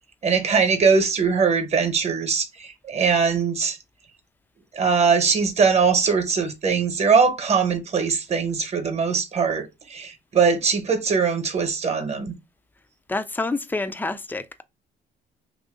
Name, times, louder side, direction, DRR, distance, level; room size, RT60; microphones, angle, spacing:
voice 1, 0.2-3.8 4.7-12.4, right 5 dB, 35° right, 1.0 m, -21 dB
voice 2, 13.1-14.6, left 3 dB, 10° left, 0.4 m, -28 dB
3.0 x 2.6 x 3.6 m
cardioid pair, 85°, 19 cm